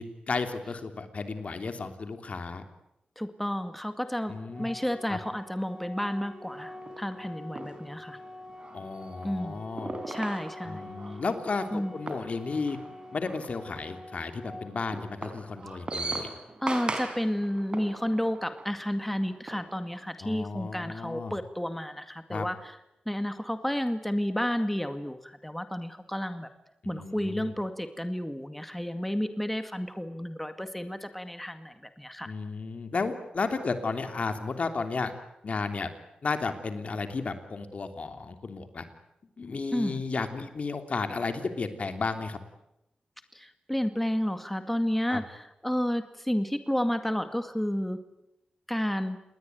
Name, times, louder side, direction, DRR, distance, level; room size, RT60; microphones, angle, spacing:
voice 1, 0.0-2.6 4.3-4.7 5.1-5.2 8.7-9.9 10.6-12.8 13.1-16.3 20.2-21.3 22.3-22.5 26.8-27.5 32.2-35.1 35.4-35.9 36.2-38.8 39.4-42.4 45.1-45.2, left 4 dB, 55° left, 8 dB, 3.1 m, -33 dB
voice 2, 3.2-8.2 9.2-9.6 10.1-10.9 11.7-11.9 16.6-22.8 23.1-26.5 26.9-32.3 39.7-40.0 43.3-48.0 48.7-49.2, equal, 5° left, 9 dB, 2.1 m, -31 dB
Organ, 4.5-15.5, left 1 dB, 15° right, 6.3 m, -46 dB
sound 1, 6.5-20.1, right 2 dB, 35° right, 5.3 m, -41 dB
28.5 x 20.5 x 9.4 m, 0.87 s
wide cardioid pair, 85°, 3 cm